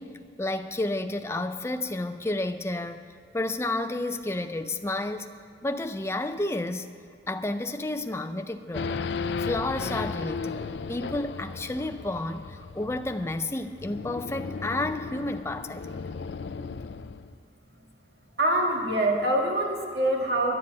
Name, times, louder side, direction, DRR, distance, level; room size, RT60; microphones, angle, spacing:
voice 1, 0.0-3.1 3.3-5.3 5.6-6.9 7.3-9.0 9.4-16.0, left 2 dB, 15° left, 8 dB, 0.4 m, -31 dB
Race car auto racing / Idling / Accelerating revving vroom, 8.7-17.3, left 4 dB, 75° left, 0.4 m, -35 dB
voice 2, 18.4-20.6, right 1 dB, 65° right, 1 dB, 1.8 m, -25 dB
12.0 x 7.4 x 9.5 m, 2.3 s
head